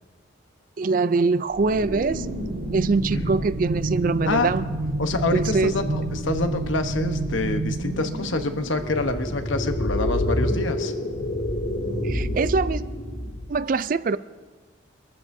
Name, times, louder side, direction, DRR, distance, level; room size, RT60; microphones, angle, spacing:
voice 1, 0.8-2.3 2.7-4.7 5.1-5.7 12.0-12.9 13.5-14.2, right 4 dB, 45° right, 0.3 m, -23 dB
sound 1, 1.5-9.8, right 2 dB, 85° right, 3.4 m, -29 dB
voice 2, 5.0-10.9, left 3 dB, 75° left, 1.0 m, -27 dB
sound 2, 8.7-13.5, left 1 dB, 60° left, 4.3 m, -27 dB
24.5 x 14.0 x 2.7 m
head